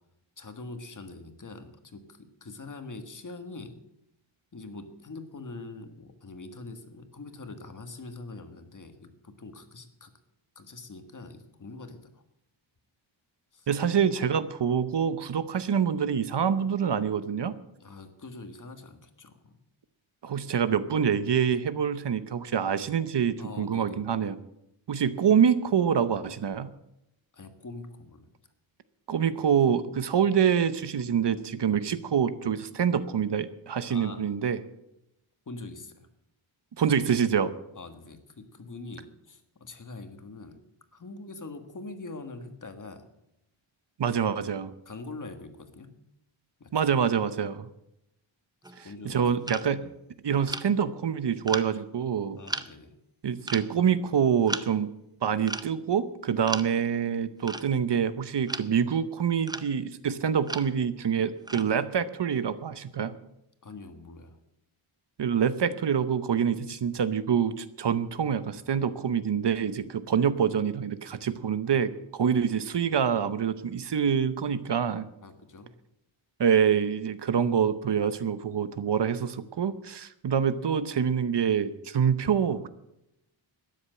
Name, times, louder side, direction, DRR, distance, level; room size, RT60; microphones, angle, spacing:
voice 1, 0.4-3.8 4.5-10.1 10.5-12.2 13.5-13.7 17.8-19.6 20.3-20.4 23.4-24.1 27.3-28.3 33.8-34.3 35.5-36.1 37.7-40.6 40.9-43.1 44.8-45.9 46.6-46.9 48.8-49.2 52.0-52.9 63.6-64.4 75.2-75.7, left 3 dB, 40° left, 7 dB, 1.5 m, -43 dB
voice 2, 13.7-17.6 20.2-24.4 24.9-26.7 29.1-34.6 36.8-37.5 44.0-44.7 46.7-47.7 48.8-49.9 50.2-52.4 53.2-54.9 55.2-63.2 65.2-75.1 76.4-82.7, right 7 dB, 60° right, 13 dB, 0.8 m, -26 dB
sound 1, 48.6-48.9 49.5-49.7 50.5-50.7 51.5-51.7 52.5-52.7 53.5-53.7 54.5-54.7 55.4-55.8 56.5-56.8 57.4-58.0 58.5-58.7 59.4-59.8 60.5-60.7 61.5-61.8, right 2 dB, 10° right, 0.5 m, -35 dB
13.0 x 10.0 x 7.7 m, 0.83 s
wide cardioid pair, 175°, 48 cm